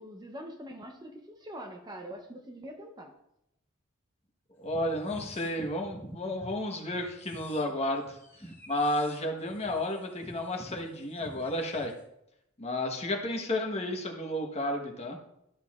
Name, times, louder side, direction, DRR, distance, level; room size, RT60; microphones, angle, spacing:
voice 1, 0.0-3.2, equal, 20° right, 4 dB, 0.7 m, -44 dB
voice 2, 4.6-8.2 8.7-11.9 12.6-15.2, left 1 dB, 30° left, 2 dB, 1.1 m, -32 dB
sound 1, 4.6-6.5 6.9-12.0, equal, 10° left, 1.2 m, -48 dB
12.5 x 6.8 x 2.4 m, 0.80 s
head